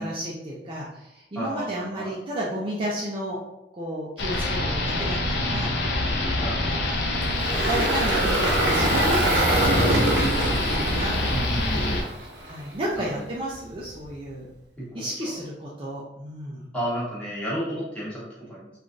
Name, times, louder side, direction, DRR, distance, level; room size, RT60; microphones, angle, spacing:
voice 1, 0.0-3.4 3.7-5.7 6.6-7.0 7.7-11.5 11.7-12.0 12.4-14.5 14.9-16.7, right 1 dB, 30° right, -5 dB, 0.4 m, -32 dB
voice 2, 1.3-2.1 6.4-7.2 11.3-12.0 13.0-13.2 14.8-15.1 16.7-18.7, equal, 5° left, -8 dB, 1.1 m, -32 dB
sound 1, 4.2-12.0, left 2 dB, 70° left, 0.5 m, -26 dB
Engine, 7.2-12.5, right 1 dB, 80° right, 0.7 m, -24 dB
3.2 x 2.4 x 2.5 m, 0.84 s
head